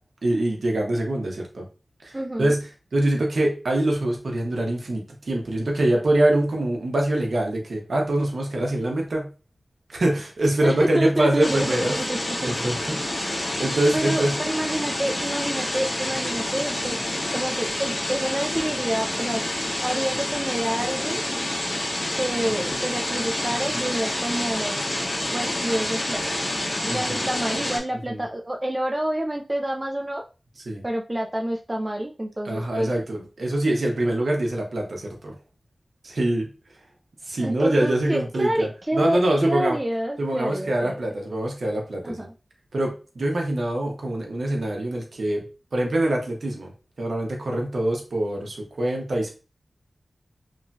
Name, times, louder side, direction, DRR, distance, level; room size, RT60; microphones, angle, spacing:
voice 1, 0.2-1.6 2.0-2.6 2.9-9.3 9.9-12.0 12.4-14.3 26.9-27.2 28.1-28.2 30.7-30.8 32.4-35.3 36.0-36.5 37.2-39.8 40.2-42.2 42.7-45.4 45.7-46.7 47.0-49.3, right 1 dB, 80° right, 1 dB, 0.8 m, -24 dB
voice 2, 2.1-2.5 10.6-12.6 13.9-17.0 17.3-19.4 19.8-21.2 22.2-24.8 25.3-26.4 26.8-30.2 30.8-32.9 37.4-41.0 42.0-42.3, right 1 dB, 25° right, 2 dB, 0.4 m, -28 dB
sound 1, 11.4-27.8, left 1 dB, 45° left, 1.2 m, -28 dB
3.0 x 2.6 x 2.2 m, 0.33 s
wide cardioid pair, 70°, 0 cm